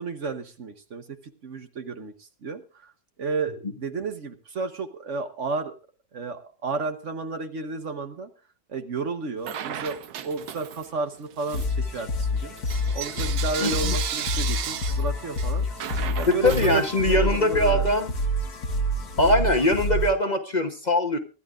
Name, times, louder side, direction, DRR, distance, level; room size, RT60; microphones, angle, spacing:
voice 1, 0.0-2.9 3.2-5.7 6.1-8.3 8.7-12.5 12.9-15.7 16.2-17.9, right 4 dB, 55° right, 9 dB, 1.3 m, -32 dB
Bell / Coin (dropping), 9.4-11.0 11.4-17.3, right 9 dB, 90° right, 1.4 m, -35 dB
sound 1, 11.5-20.1, left 1 dB, 90° left, 2.1 m, -27 dB
voice 2, 13.6-13.9 16.3-18.1 19.2-21.2, left 1 dB, 30° left, 5 dB, 1.1 m, -22 dB
24.0 x 11.5 x 2.5 m, 0.33 s
omnidirectional pair, 1.6 m